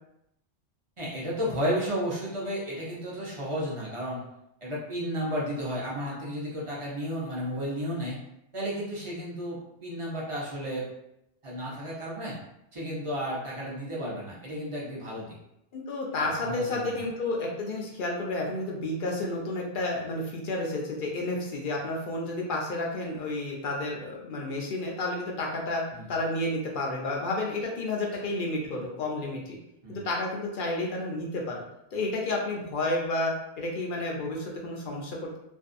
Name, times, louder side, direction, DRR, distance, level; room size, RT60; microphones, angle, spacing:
voice 1, 1.0-4.2 4.6-8.2 8.5-10.9 11.4-12.3 12.7-15.3 16.2-16.9 25.9-26.1 29.8-30.0, equal, 35° right, -6 dB, 0.7 m, -33 dB
voice 2, 15.7-25.8 26.1-29.6 29.9-31.6 31.9-35.4, left 2 dB, 60° left, -1 dB, 0.6 m, -31 dB
2.5 x 2.3 x 2.5 m, 0.82 s
omnidirectional pair, 1.2 m